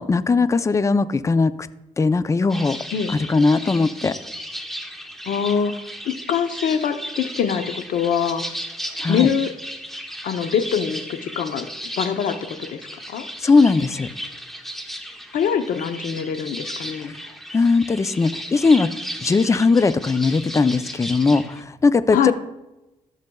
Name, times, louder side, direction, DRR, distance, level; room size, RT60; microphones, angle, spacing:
voice 1, 0.0-1.5 2.0-2.8 3.1-4.1 9.0-9.3 13.4-14.1 17.5-18.9 19.2-22.3, left 4 dB, 20° left, 14 dB, 0.4 m, -19 dB
sound 1, 2.5-21.6, equal, ahead, 0.9 m, -35 dB
voice 2, 5.3-5.7 6.1-8.4 9.1-9.5 10.2-11.7 12.0-12.8 13.1-13.3 15.3-17.2 22.1-22.3, left 8 dB, 80° left, 9 dB, 0.7 m, -23 dB
14.0 x 6.6 x 2.3 m, 0.98 s
cardioid pair, 90°, 14 cm